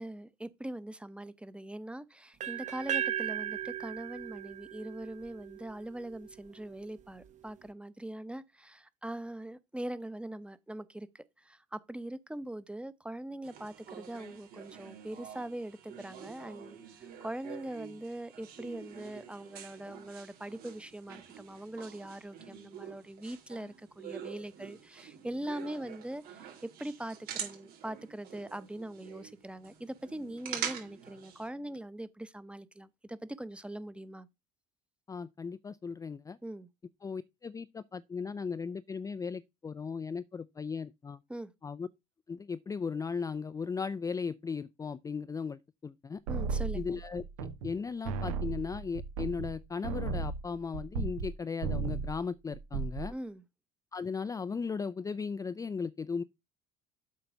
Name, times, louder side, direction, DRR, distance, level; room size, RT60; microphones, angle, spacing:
voice 1, 0.0-34.3 36.4-36.7 41.3-41.5 46.3-47.0 53.1-53.4, right 1 dB, 5° right, 0.8 m, -42 dB
sound 1, 2.4-6.3, right 10 dB, 45° right, 0.9 m, -37 dB
sound 2, 13.4-31.5, right 8 dB, 60° right, 3.3 m, -46 dB
voice 2, 35.1-36.4 37.0-41.2 41.6-41.9 42.3-46.2 46.7-53.1 53.9-56.2, left 5 dB, 20° left, 0.4 m, -37 dB
sound 3, 46.3-47.8 48.0-51.3 51.6-52.2 52.5-53.1, right 4 dB, 85° right, 1.1 m, -35 dB
7.8 x 4.0 x 5.7 m
hypercardioid pair, 75°, 17 cm